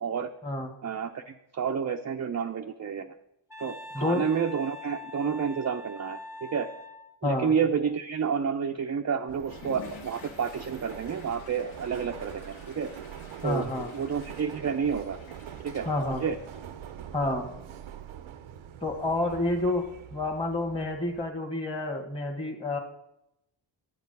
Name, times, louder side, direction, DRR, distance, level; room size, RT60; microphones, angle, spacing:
voice 1, 0.8-3.1 3.6-6.7 7.2-12.9 13.4-15.2 15.6-16.4 17.2-17.3, right 6 dB, 35° right, 5 dB, 0.5 m, -30 dB
Wind instrument woodwind instrument, 3.5-7.1, left 2 dB, 5° right, 0.9 m, -43 dB
Subway metro underground, 9.3-21.3, right 9 dB, 75° right, 0.7 m, -44 dB
Water / Toilet flush, 9.4-17.1, left 4 dB, 70° left, 1.4 m, -50 dB
voice 2, 13.4-13.9 15.8-16.2 17.1-17.5 18.8-19.9 20.1-22.8, left 2 dB, 10° left, 0 dB, 1.5 m, -29 dB
7.6 x 7.2 x 5.3 m, 0.83 s
cardioid pair, 65°, 49 cm